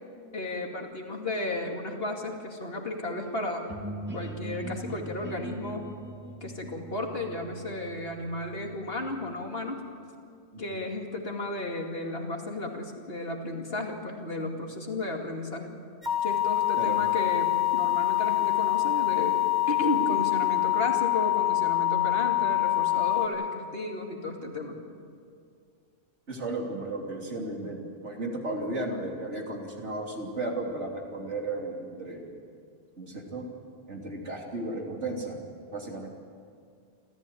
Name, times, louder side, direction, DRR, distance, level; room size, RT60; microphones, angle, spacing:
voice 1, 0.3-3.7 4.1-5.8 6.4-9.8 10.6-15.7 16.2-19.4 19.7-24.8, left 2 dB, 55° left, 2 dB, 2.7 m, -33 dB
sound 1, 3.7-9.3, right 1 dB, 10° right, 2.4 m, -40 dB
sound 2, 16.0-23.3, left 16 dB, 40° right, 2.7 m, -25 dB
voice 2, 26.3-32.4 33.0-33.5 33.9-35.4 35.7-36.1, right 2 dB, 75° right, 0 dB, 3.5 m, -34 dB
28.0 x 14.5 x 9.3 m, 2.3 s
omnidirectional pair, 1.2 m